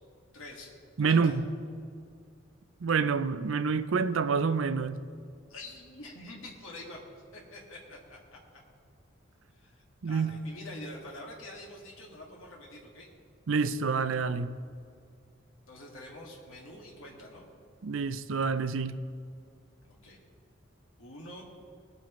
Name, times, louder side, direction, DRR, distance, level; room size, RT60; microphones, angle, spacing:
voice 1, 0.3-0.7 1.0-1.4 5.5-7.0 7.3-8.6 9.5-13.1 15.7-17.5 19.9-20.2 21.0-21.4, left 1 dB, 80° left, -2 dB, 2.1 m, -46 dB
voice 2, 1.0-1.3 2.8-5.0 10.0-10.3 13.5-14.5 17.8-19.0, right 5 dB, 75° right, 12 dB, 0.5 m, -27 dB
20.0 x 9.0 x 3.1 m, 2.2 s
head